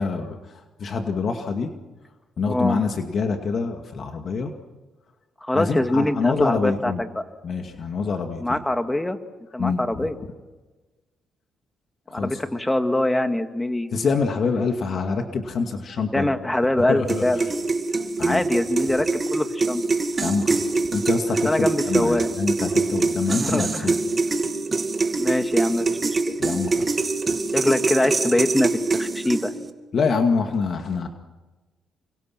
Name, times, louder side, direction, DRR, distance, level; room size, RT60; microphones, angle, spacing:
voice 1, 0.0-1.7 2.4-4.5 5.5-7.0 7.4-8.6 9.6-10.1 12.1-12.4 13.9-16.3 16.9-17.5 18.2-18.4 20.2-24.0 26.4-27.0 29.9-31.1, left 4 dB, 55° left, 4 dB, 2.2 m, -26 dB
voice 2, 2.5-2.8 5.4-7.2 8.4-9.2 9.5-10.2 12.1-14.0 16.1-17.5 18.2-19.8 21.4-22.3 23.4-23.9 25.2-26.4 27.5-29.5, left 1 dB, 10° left, 7 dB, 2.1 m, -23 dB
sound 1, 17.1-29.7, right 3 dB, 30° right, 2.3 m, -24 dB
29.5 x 25.5 x 6.1 m, 1.2 s
cardioid pair, 90°, 0 cm